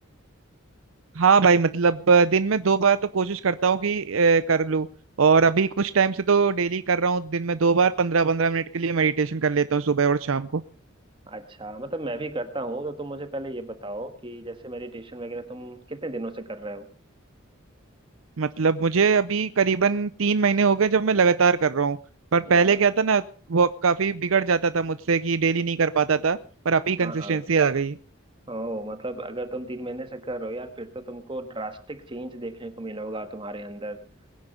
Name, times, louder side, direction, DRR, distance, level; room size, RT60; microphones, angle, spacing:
voice 1, 1.1-4.9 5.2-10.6 18.4-22.0 22.3-23.2 23.5-26.4 26.6-28.0, right 5 dB, 85° right, 13 dB, 0.6 m, -21 dB
voice 2, 11.3-16.9 22.4-22.8 27.0-27.4 28.5-34.0, right 2 dB, 25° right, 8 dB, 1.6 m, -34 dB
21.5 x 9.8 x 5.2 m, 0.40 s
head